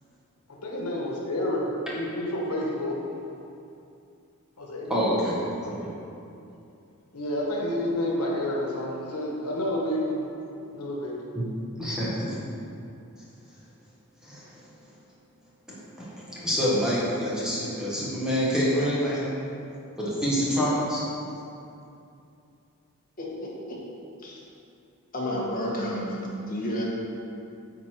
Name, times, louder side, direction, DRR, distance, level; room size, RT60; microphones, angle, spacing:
voice 1, 0.6-3.0 4.6-4.9 7.1-10.2 10.7-11.2, left 1 dB, 90° left, -2 dB, 1.3 m, -29 dB
voice 2, 4.9-5.4 5.6-5.9 11.4-11.5 11.8-12.3 14.2-14.5 15.7-19.2 20.0-21.0, equal, 5° right, -8 dB, 1.6 m, -26 dB
voice 3, 23.2-23.8 24.2-24.4 25.1-26.8, equal, 40° left, -5 dB, 1.7 m, -31 dB
9.3 x 4.3 x 4.6 m, 2.6 s
head